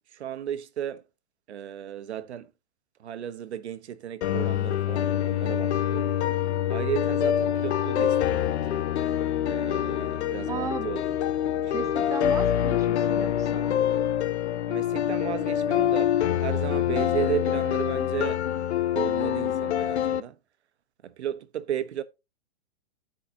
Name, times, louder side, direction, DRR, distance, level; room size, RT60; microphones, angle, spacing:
voice 1, 0.1-1.1 1.5-2.5 3.0-6.2 6.7-8.7 9.4-11.0 11.6-12.1 14.7-18.4 18.9-20.4 21.0-22.0, right 10 dB, 85° right, 1.0 m, -34 dB
sound 1, 4.2-20.2, left 11 dB, 85° left, 0.6 m, -26 dB
sound 2, 5.0-14.1, left 9 dB, 40° left, 1.3 m, -36 dB
voice 2, 10.5-10.9 11.7-13.8, right 6 dB, 10° right, 0.4 m, -36 dB
14.0 x 5.0 x 2.8 m
hypercardioid pair, 140°, 32 cm